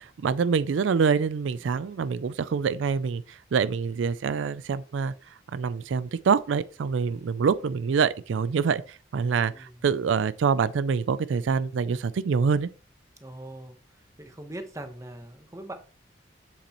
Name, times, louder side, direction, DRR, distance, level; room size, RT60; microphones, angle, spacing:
voice 1, 0.0-5.1 5.5-12.7, right 6 dB, 85° right, 0.4 m, -26 dB
voice 2, 13.2-13.8 14.2-15.7, right 1 dB, 15° right, 1.0 m, -41 dB
7.7 x 7.1 x 3.0 m
head